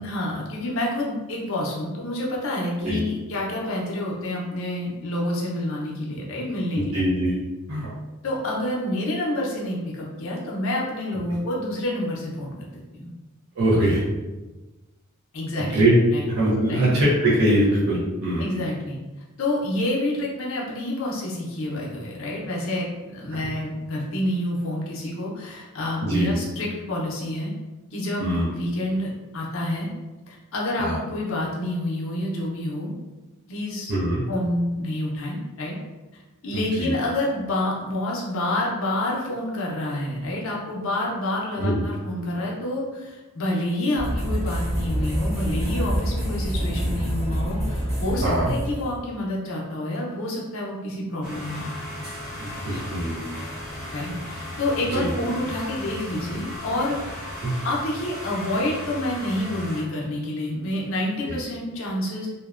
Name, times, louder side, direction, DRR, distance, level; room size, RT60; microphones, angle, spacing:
voice 1, 0.0-7.0 8.2-12.6 13.0-13.1 15.3-15.9 16.1-16.3 16.7-16.9 18.4-19.0 19.4-27.5 27.9-29.9 30.3-32.9 33.5-33.9 34.3-35.8 36.4-51.7 53.9-57.0 57.6-62.3, left 1 dB, 65° left, -3 dB, 0.5 m, -28 dB
voice 2, 6.7-7.3 7.7-7.9 13.6-14.0 15.7-16.0 16.3-18.4 26.0-26.4 28.2-28.5 30.8-31.0 33.9-34.2 36.5-36.9 41.6-41.7 48.2-48.5 52.4-53.2 54.9-55.1 57.4-57.5 61.2-61.3, right 1 dB, 85° right, -7 dB, 0.7 m, -22 dB
sound 1, 44.0-49.0, equal, 30° right, 1.0 m, -26 dB
sound 2, 51.2-59.8, left 1 dB, 5° right, 0.8 m, -36 dB
2.6 x 2.1 x 2.4 m, 1.2 s
head